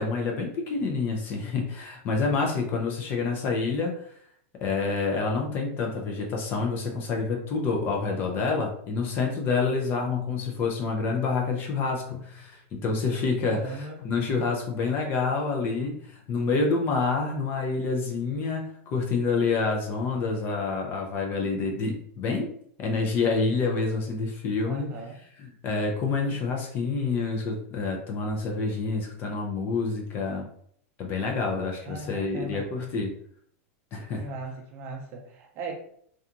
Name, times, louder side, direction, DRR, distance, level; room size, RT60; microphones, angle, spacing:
voice 1, 0.0-4.0 4.6-22.5 22.8-25.0 25.4-30.5 31.0-33.1 33.9-34.3, left 4 dB, 25° left, 1 dB, 0.4 m, -28 dB
sound 1, 12.1-12.8 13.7-14.7 15.3-15.4 15.8-16.8, left 7 dB, 90° left, 0.6 m, -46 dB
voice 2, 13.5-13.9 24.6-25.1 31.8-32.7 34.2-35.7, right 3 dB, 30° right, 0 dB, 0.5 m, -38 dB
2.7 x 2.3 x 2.4 m, 0.63 s
supercardioid pair, 165°, 8 cm